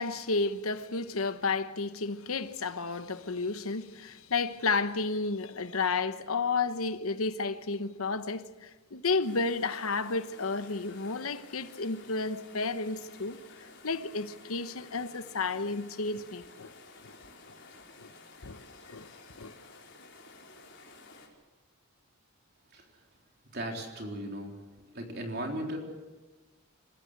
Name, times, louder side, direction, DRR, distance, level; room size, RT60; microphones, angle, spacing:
voice 1, 0.0-16.7 17.0-17.1 18.0-18.1 18.4-19.1 19.4-19.5, left 4 dB, 80° left, 1.1 m, -32 dB
sound 1, 9.2-21.3, left 3 dB, 55° left, 4.7 m, -53 dB
voice 2, 23.5-24.5 24.9-25.8, right 1 dB, 50° right, 3.9 m, -36 dB
26.5 x 15.0 x 8.3 m
head